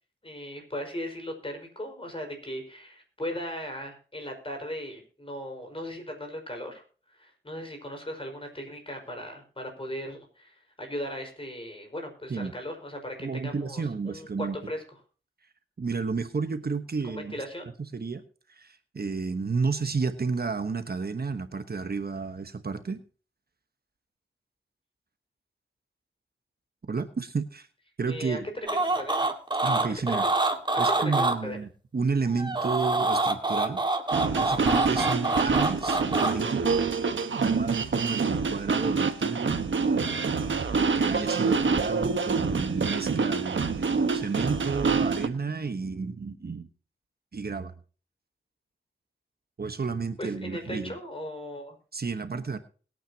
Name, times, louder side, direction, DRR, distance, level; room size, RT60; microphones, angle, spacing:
voice 1, 0.2-14.8 17.0-17.7 28.1-28.4 28.9-29.3 30.1-30.3 30.7-31.6 50.2-51.8, equal, 25° left, 3 dB, 5.2 m, -38 dB
voice 2, 13.2-14.6 15.8-17.3 17.8-18.2 18.5-23.0 26.9-27.7 28.0-28.5 29.6-30.3 30.8-33.8 34.4-36.9 37.4-39.6 40.7-46.7 47.3-47.7 49.6-50.9 51.9-52.6, right 4 dB, 50° right, 9 dB, 1.2 m, -31 dB
sound 1, 28.7-31.4 32.3-36.3, right 2 dB, 25° right, 2.0 m, -26 dB
sound 2, 34.1-45.3, right 4 dB, 70° right, 1.3 m, -26 dB
21.5 x 9.1 x 2.9 m, 0.39 s
wide cardioid pair, 85°, 20 cm